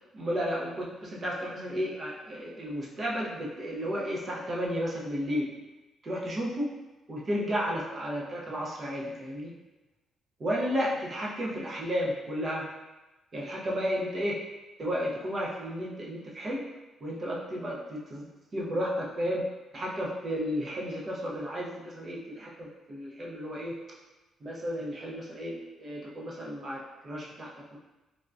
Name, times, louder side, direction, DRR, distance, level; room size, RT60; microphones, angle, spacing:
voice 1, 0.1-5.5 6.0-6.7 7.1-9.5 10.4-12.7 13.3-14.5 14.8-16.7 17.0-18.3 18.5-23.8 24.4-27.8, equal, 40° right, -4 dB, 0.7 m, -33 dB
3.5 x 2.3 x 2.5 m, 1.1 s
cardioid pair, 90°, 0 cm